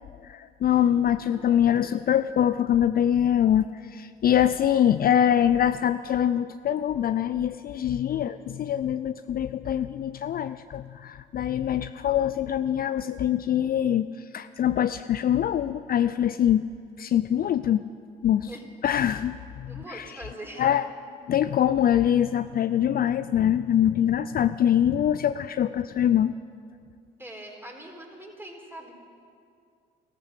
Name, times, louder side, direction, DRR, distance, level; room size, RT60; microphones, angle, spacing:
voice 1, 0.2-14.1 14.3-16.6 17.0-17.8 18.2-18.5 18.8-20.0 20.6-20.9 21.3-26.3, left 10 dB, 45° left, 12 dB, 0.5 m, -24 dB
voice 2, 1.3-1.9 8.1-8.5 18.4-18.6 19.7-20.7 27.2-28.9, right 1 dB, 10° right, 1 dB, 3.9 m, -43 dB
14.5 x 14.0 x 6.6 m, 2.3 s
hypercardioid pair, 60°, 21 cm